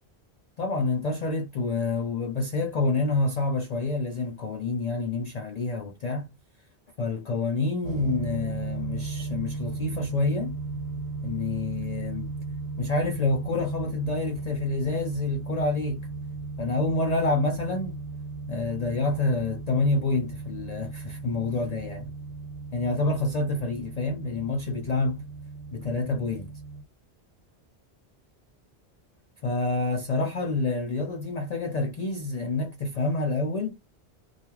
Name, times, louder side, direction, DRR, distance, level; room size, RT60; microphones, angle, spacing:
voice 1, 0.6-6.3 7.0-10.6 11.2-12.3 12.8-16.0 16.6-18.0 18.5-22.1 22.7-25.3 25.7-26.5 29.4-33.8, left 3 dB, 55° left, 0.4 m, -28 dB
sound 1, 7.8-26.8, right 4 dB, 85° right, 0.9 m, -36 dB
2.3 x 2.2 x 3.0 m
omnidirectional pair, 1.1 m